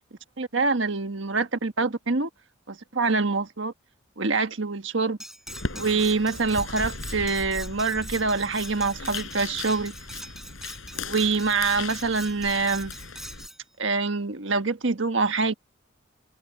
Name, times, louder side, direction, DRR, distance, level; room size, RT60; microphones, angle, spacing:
voice 1, 0.4-2.3 2.7-3.7 4.2-5.2 5.7-9.9 10.9-12.9 13.8-15.5, right 4 dB, 65° right, 1.5 m, -25 dB
Cutlery silverware, 5.2-13.6, right 1 dB, ahead, 4.8 m, -42 dB
sound 1, 5.5-13.5, left 3 dB, 75° left, 6.0 m, -37 dB
head